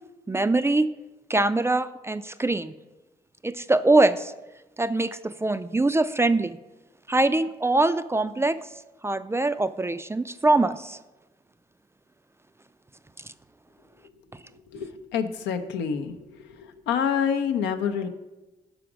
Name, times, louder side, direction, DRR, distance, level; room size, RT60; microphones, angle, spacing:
voice 1, 0.3-0.9 1.3-2.7 3.4-4.3 4.8-6.6 7.1-8.6 9.0-11.0, right 2 dB, 15° right, 13 dB, 0.3 m, -23 dB
voice 2, 14.7-16.1 16.6-18.1, left 7 dB, 75° left, 8 dB, 0.5 m, -27 dB
5.0 x 4.9 x 6.0 m, 1.1 s
hypercardioid pair, 45°, 18 cm